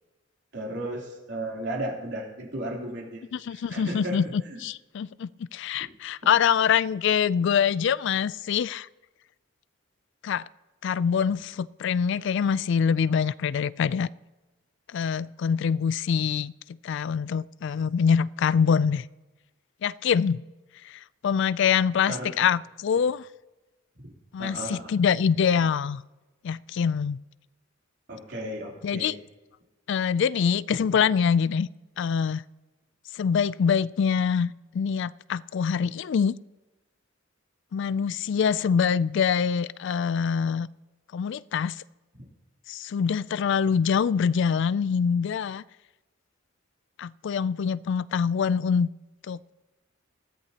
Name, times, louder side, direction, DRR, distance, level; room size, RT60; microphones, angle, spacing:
voice 1, 0.5-4.2 4.5-4.6 22.1-22.3 24.0-24.1 24.4-24.8 28.1-29.2 42.1-42.2, right 1 dB, 60° right, -2 dB, 3.3 m, -34 dB
voice 2, 3.3-8.9 10.2-10.4 10.8-14.1 14.9-16.5 16.8-19.0 19.8-20.4 20.8-23.3 24.3-26.0 26.4-27.2 28.8-29.1 29.9-31.7 32.0-32.4 33.1-36.3 37.7-40.7 41.1-41.8 42.7-45.6 47.0-48.9 49.3-49.4, left 7 dB, 60° left, 19 dB, 0.3 m, -25 dB
20.5 x 13.5 x 2.9 m, 1.1 s
head